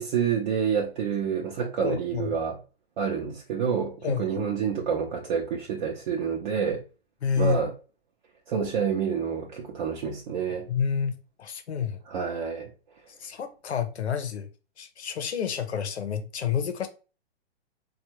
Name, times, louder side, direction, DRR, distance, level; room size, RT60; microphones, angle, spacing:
voice 1, 0.0-2.6 3.0-6.8 7.4-7.7 8.5-10.7 12.1-12.7, right 7 dB, 45° right, 0.7 m, -28 dB
voice 2, 1.8-2.3 4.0-4.4 7.2-7.6 10.7-12.0 13.2-14.5 14.8-16.9, left 7 dB, 85° left, 0.8 m, -29 dB
3.5 x 2.4 x 2.9 m
hypercardioid pair, 135°, 32 cm